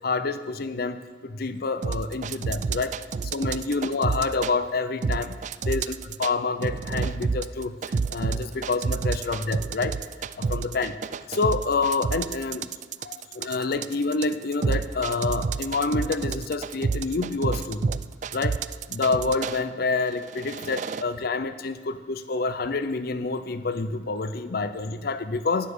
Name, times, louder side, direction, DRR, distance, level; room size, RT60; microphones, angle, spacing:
voice 1, 0.0-2.9 3.2-5.4 5.7-10.0 10.4-11.0 11.3-12.7 13.0-17.8 18.3-18.6 18.9-25.7, left 3 dB, 55° left, 12 dB, 0.6 m, -28 dB
sound 1, 1.8-4.5 5.0-6.3 6.6-19.6 20.2-21.0, right 4 dB, 40° right, 0.3 m, -29 dB
11.5 x 9.9 x 6.7 m, 1.4 s
head